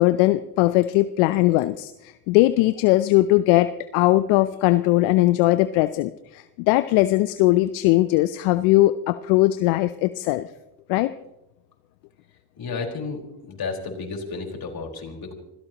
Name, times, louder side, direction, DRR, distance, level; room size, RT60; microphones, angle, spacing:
voice 1, 0.0-10.5 10.9-11.1, left 17 dB, 80° left, 13 dB, 0.7 m, -20 dB
voice 2, 12.6-13.2 13.5-15.3, left 4 dB, 50° left, 1 dB, 4.6 m, -32 dB
26.5 x 17.0 x 3.0 m, 0.92 s
hypercardioid pair, 50°, 46 cm